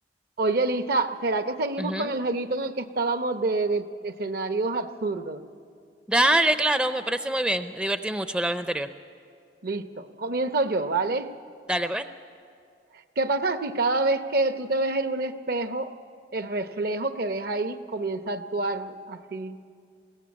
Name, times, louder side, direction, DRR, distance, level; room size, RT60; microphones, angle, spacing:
voice 1, 0.4-5.4 9.6-11.3 13.2-15.9 16.3-19.6, right 2 dB, 60° right, 10 dB, 0.8 m, -27 dB
voice 2, 1.8-2.2 6.1-8.9 11.7-12.1, right 1 dB, 5° right, 10 dB, 0.5 m, -25 dB
21.0 x 16.5 x 8.6 m, 2.3 s
head